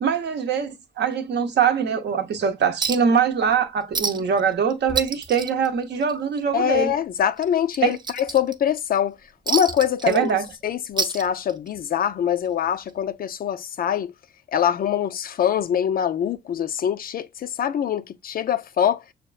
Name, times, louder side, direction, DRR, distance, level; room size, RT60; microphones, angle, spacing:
voice 1, 0.0-6.9 7.8-8.0 10.1-10.5, right 7 dB, 60° right, 0.7 m, -22 dB
Chink clink, 2.8-3.2 3.5-3.6 3.9-4.4 4.7-6.4 6.7-6.9 7.4-8.8 9.5-10.6 10.9-11.8 12.9-13.0, right 4 dB, 20° right, 0.5 m, -29 dB
voice 2, 6.5-9.2 9.5-10.3 10.6-14.1 14.5-19.0, left 9 dB, 50° left, 0.4 m, -24 dB
6.3 x 2.3 x 2.3 m
cardioid pair, 90°, 20 cm